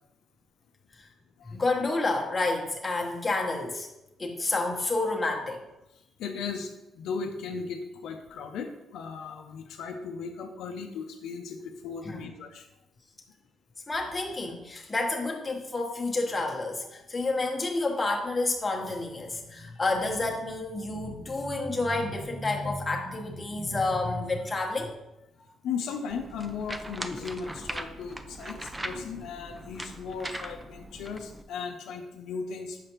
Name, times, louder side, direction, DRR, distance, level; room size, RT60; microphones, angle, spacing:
voice 1, 1.5-3.9 4.2-5.6 12.0-12.3 13.9-24.9, left 2 dB, 20° left, -1 dB, 1.1 m, -29 dB
voice 2, 6.2-12.7 25.6-32.8, left 5 dB, 80° left, 4 dB, 0.5 m, -37 dB
sound 1, 26.1-31.4, right 1 dB, 15° right, 0.5 m, -40 dB
6.5 x 4.9 x 3.0 m, 0.93 s
cardioid pair, 90°, 0 cm